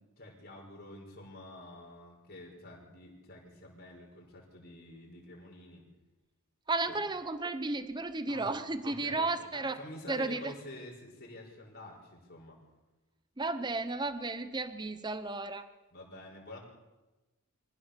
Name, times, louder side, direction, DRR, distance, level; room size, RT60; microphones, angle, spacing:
voice 1, 0.0-5.8 6.9-7.0 8.3-8.5 8.8-12.6 15.9-16.6, left 1 dB, 45° left, -1 dB, 5.7 m, -48 dB
voice 2, 6.7-9.8 10.1-10.5 13.4-15.7, right 3 dB, 20° right, 11 dB, 0.9 m, -33 dB
24.0 x 16.0 x 7.0 m, 1.1 s
head